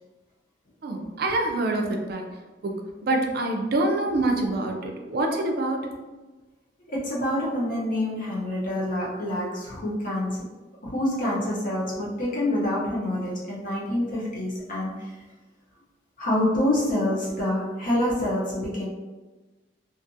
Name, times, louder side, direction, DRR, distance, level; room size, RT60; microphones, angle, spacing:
voice 1, 0.8-2.3 2.6-5.9, right 2 dB, 60° right, 2 dB, 0.4 m, -26 dB
voice 2, 6.9-10.5 10.8-15.1 16.2-18.9, left 1 dB, 50° left, -5 dB, 0.9 m, -27 dB
2.5 x 2.5 x 2.6 m, 1.2 s
head